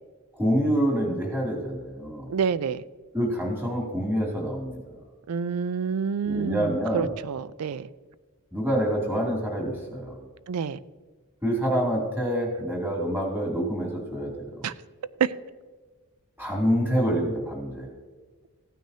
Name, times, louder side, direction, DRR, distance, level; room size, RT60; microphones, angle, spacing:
voice 1, 0.4-2.3 3.1-4.8 6.2-7.1 8.5-10.2 11.4-14.6 16.4-17.9, equal, 10° right, -2 dB, 2.6 m, -26 dB
voice 2, 2.3-2.8 5.3-7.9 10.5-10.8 14.6-14.7 15.2-15.3, right 6 dB, 85° right, 17 dB, 0.4 m, -28 dB
15.5 x 9.3 x 2.8 m, 1.4 s
head